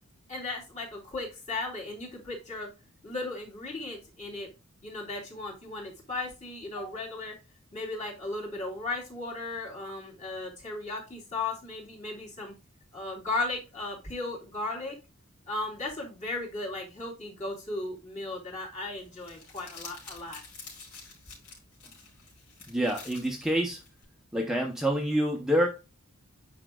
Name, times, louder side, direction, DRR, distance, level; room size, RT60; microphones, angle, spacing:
voice 1, 0.3-2.7 3.0-4.5 4.8-7.4 7.7-12.5 12.9-15.0 15.5-20.4, left 2 dB, 35° left, 3.3 m, -36 dB
Crumpling crinkling, 19.0-24.0, left 4 dB, 85° left, 4.4 m, -49 dB
voice 2, 22.7-23.8 24.3-25.7, equal, ahead, 0.7 m, -27 dB
9.4 x 5.1 x 2.3 m
head